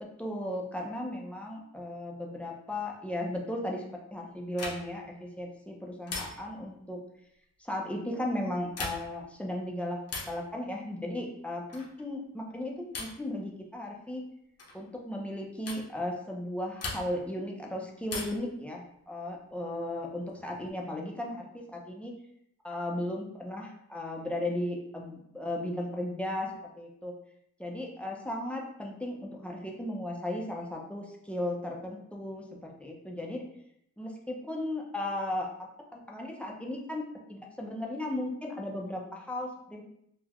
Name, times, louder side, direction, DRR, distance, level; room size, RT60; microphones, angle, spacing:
voice 1, 0.2-3.8 4.1-7.0 7.6-10.0 10.3-14.2 14.7-22.1 22.6-26.5 26.8-27.1 27.6-33.4 34.0-35.5 35.9-37.0 37.3-39.8, left 1 dB, 5° left, -2 dB, 0.4 m, -36 dB
sound 1, 4.5-5.1 6.1-6.7 8.6-9.3 10.1-10.5 11.7-12.0 12.9-13.3 14.6-14.8 15.7-15.9 16.8-17.3 18.1-18.6 20.0-20.7, left 3 dB, 50° left, 0.8 m, -39 dB
3.8 x 2.1 x 2.9 m, 0.74 s
wide cardioid pair, 155°, 31 cm